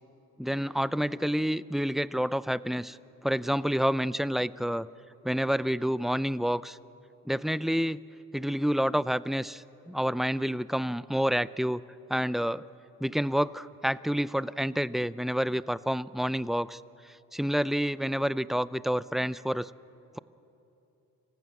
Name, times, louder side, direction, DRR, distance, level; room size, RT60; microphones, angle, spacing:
voice 1, 0.4-3.0 3.2-4.9 5.2-6.8 7.3-8.0 8.3-11.8 12.1-12.6 13.0-19.7, equal, ahead, 17 dB, 0.5 m, -28 dB
26.0 x 15.5 x 9.5 m, 2.9 s
supercardioid pair, 55°, 34 cm